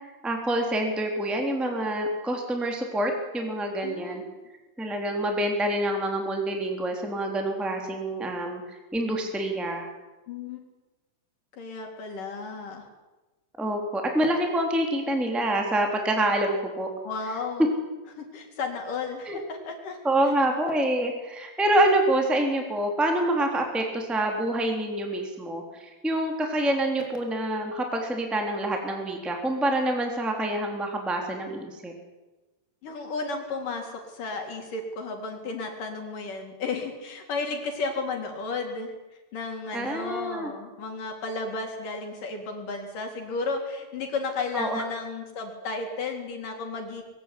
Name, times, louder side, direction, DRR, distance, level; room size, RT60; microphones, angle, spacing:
voice 1, 0.2-4.2 4.8-9.9 13.6-16.9 19.2-19.4 20.0-31.9 39.7-40.5 44.5-44.8, right 1 dB, ahead, 2 dB, 2.9 m, -26 dB
voice 2, 3.8-4.3 10.3-10.6 11.6-12.9 17.0-17.7 18.2-20.0 32.8-38.9 39.3-47.0, left 4 dB, 70° left, 3 dB, 5.4 m, -33 dB
23.0 x 17.0 x 9.9 m, 1.1 s
omnidirectional pair, 3.9 m